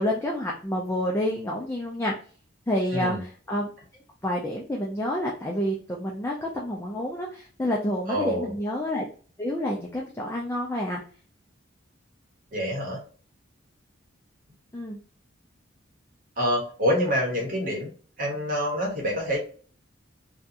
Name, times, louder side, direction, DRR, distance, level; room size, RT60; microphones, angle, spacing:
voice 1, 0.0-2.1 2.7-3.7 4.2-9.1 9.4-11.0 14.7-15.0, left 1 dB, 15° left, -2 dB, 0.3 m, -28 dB
voice 2, 2.9-3.2 8.1-8.6 12.5-13.0 16.4-17.9 18.2-19.4, equal, 40° right, -1 dB, 1.0 m, -26 dB
2.7 x 2.3 x 2.4 m, 0.41 s
head